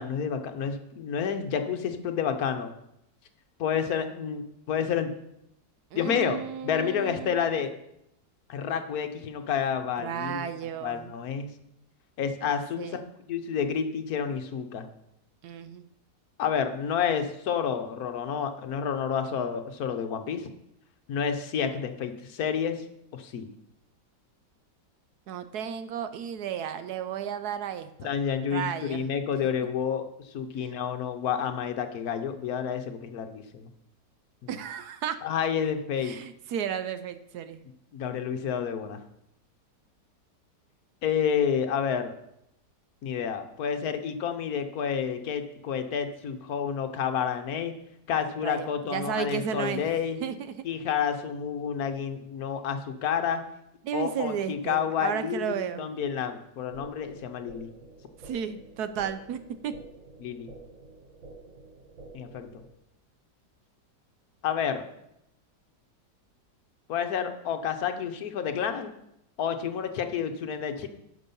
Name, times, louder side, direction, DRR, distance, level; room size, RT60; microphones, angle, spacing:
voice 1, 0.0-2.7 3.6-5.1 5.9-7.7 8.5-10.5 10.8-11.5 12.2-13.0 13.3-14.9 16.4-20.5 21.1-22.8 23.1-23.5 28.0-30.1 30.3-33.7 34.4-34.5 35.2-36.1 37.9-39.0 41.0-42.1 43.0-47.7 48.1-50.2 50.6-53.4 53.9-57.7 60.2-60.5 62.1-62.5 64.4-64.8 66.9-69.0 69.4-70.9, left 7 dB, 60° left, 7 dB, 1.3 m, -29 dB
voice 2, 5.9-7.4 10.0-11.1 12.8-13.0 15.4-15.8 25.3-28.1 28.5-29.1 34.5-35.2 36.0-37.6 48.4-49.9 50.2-50.6 53.8-55.9 58.2-59.7, right 8 dB, 70° right, 11 dB, 1.1 m, -33 dB
sound 1, 56.7-62.7, right 3 dB, 50° right, 1.4 m, -49 dB
9.8 x 6.3 x 5.4 m, 0.79 s
omnidirectional pair, 1.9 m